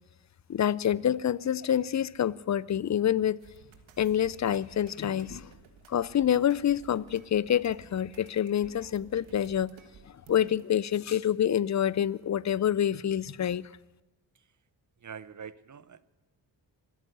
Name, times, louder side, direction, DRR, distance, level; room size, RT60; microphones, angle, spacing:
voice 1, 0.5-3.4 4.0-5.5 5.9-9.7 10.3-13.7, left 10 dB, 40° left, 0.5 m, -27 dB
sound 1, 3.4-10.6, right 6 dB, 90° right, 1.5 m, -54 dB
voice 2, 15.0-16.0, right 7 dB, 40° right, 0.8 m, -44 dB
25.0 x 8.5 x 6.8 m
supercardioid pair, 45°, 45 cm